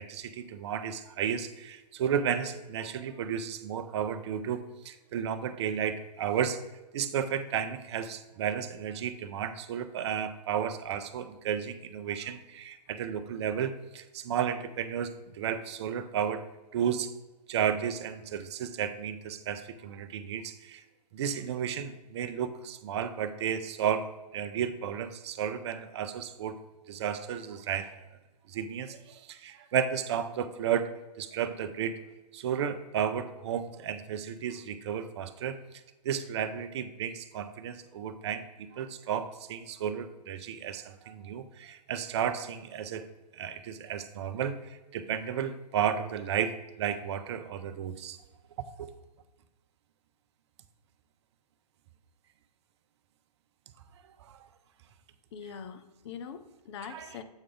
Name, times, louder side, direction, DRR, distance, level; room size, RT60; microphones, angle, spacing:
voice 1, 0.0-6.6 6.9-16.5 16.7-17.1 17.5-20.8 21.1-26.6 26.9-28.0 28.5-32.0 32.3-35.6 36.0-43.1 43.3-48.2 48.8-48.9 54.2-54.3 56.9-57.1, right 8 dB, 40° right, 11 dB, 0.5 m, -33 dB
voice 2, 55.3-57.2, left 7 dB, 40° left, 9 dB, 0.6 m, -43 dB
8.0 x 4.7 x 3.8 m, 1.1 s
figure-of-eight pair, 125°, 21 cm